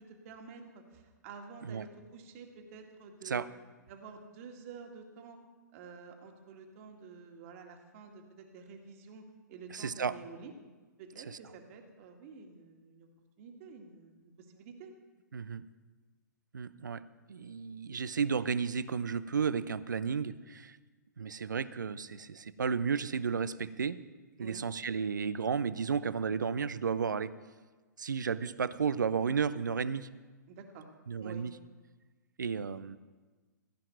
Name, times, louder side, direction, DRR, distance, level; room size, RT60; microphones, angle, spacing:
voice 1, 0.0-3.5 3.9-5.4 5.7-10.5 11.0-13.1 13.4-14.9 24.4-24.6 30.5-30.9 31.2-31.5 32.7-32.8, right 5 dB, 45° right, 3 dB, 2.0 m, -50 dB
voice 2, 9.7-10.2 11.3-11.4 15.3-15.7 16.5-20.8 21.2-24.0 24.4-27.3 28.0-30.1 31.1-31.5 32.4-33.0, right 6 dB, 75° right, 16 dB, 0.6 m, -33 dB
16.0 x 5.7 x 9.3 m, 1.3 s
figure-of-eight pair, 115°, 10 cm